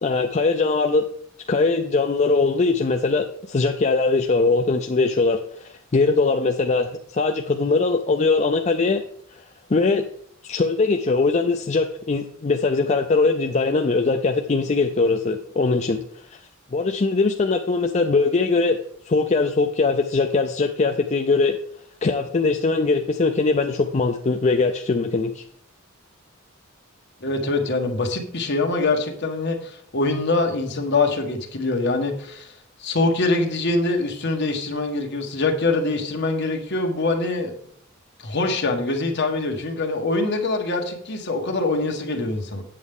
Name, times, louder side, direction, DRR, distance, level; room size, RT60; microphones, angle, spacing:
voice 1, 0.0-1.1 1.5-9.0 9.7-10.1 10.4-16.0 16.3-16.4 16.7-18.8 19.1-21.6 22.0-25.4, left 3 dB, 35° left, 5 dB, 0.5 m, -21 dB
voice 2, 27.2-37.5 38.2-42.6, left 3 dB, 55° left, 3 dB, 1.5 m, -24 dB
8.5 x 8.0 x 3.6 m, 0.63 s
head